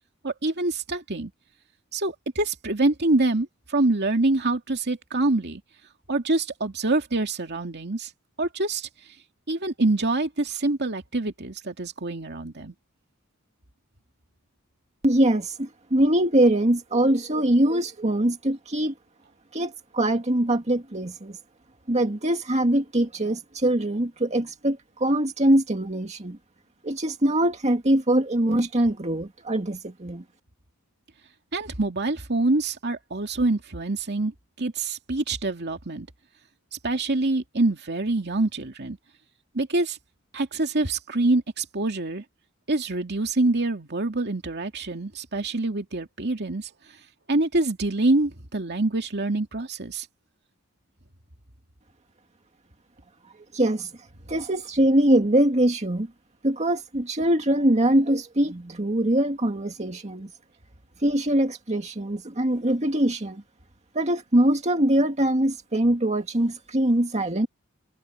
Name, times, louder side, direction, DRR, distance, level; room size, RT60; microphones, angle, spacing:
voice 1, 0.2-1.3 1.9-5.6 6.1-8.1 8.4-8.9 9.5-12.7 31.5-34.3 34.6-36.1 36.7-39.0 39.5-40.0 40.3-42.2 42.7-46.7 47.3-50.1, right 2 dB, 50° right, 2.5 m, -25 dB
voice 2, 15.0-18.9 19.5-21.4 21.9-26.4 26.8-30.2 53.5-53.9 54.3-56.1 56.4-60.3 61.0-63.4 63.9-67.5, right 1 dB, 35° right, 2.0 m, -23 dB
head